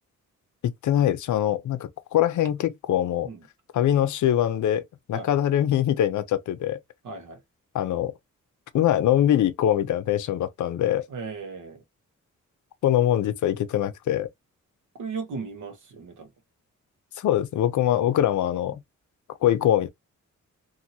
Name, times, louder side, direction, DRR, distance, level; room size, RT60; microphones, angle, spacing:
voice 1, 0.6-3.3 3.7-6.8 7.7-8.1 8.7-11.0 12.8-14.3 17.2-18.8 19.4-19.9, left 11 dB, 70° left, 0.5 m, -23 dB
voice 2, 7.0-7.4 11.1-11.8 15.0-16.3, right 4 dB, 75° right, 0.9 m, -36 dB
2.7 x 2.6 x 2.7 m
wide cardioid pair, 165°, 31 cm